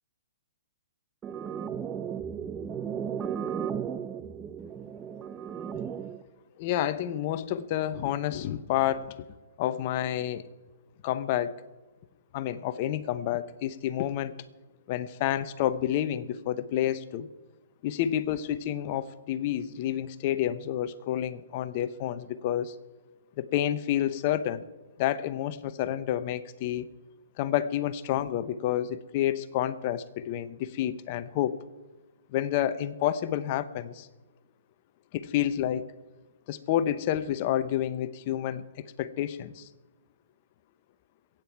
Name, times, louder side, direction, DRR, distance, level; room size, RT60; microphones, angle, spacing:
sound 1, 1.2-6.2, right 8 dB, 20° right, 0.6 m, -35 dB
voice 1, 6.6-9.2 9.6-10.4 11.0-11.6 12.3-14.3 14.9-17.3 17.8-22.7 23.4-24.6 25.0-26.9 27.4-31.6 32.3-34.1 35.1-35.9 36.5-39.7, left 11 dB, 40° left, 14 dB, 0.9 m, -29 dB
22.5 x 9.1 x 4.7 m, 1.2 s
hypercardioid pair, 130°, 0 cm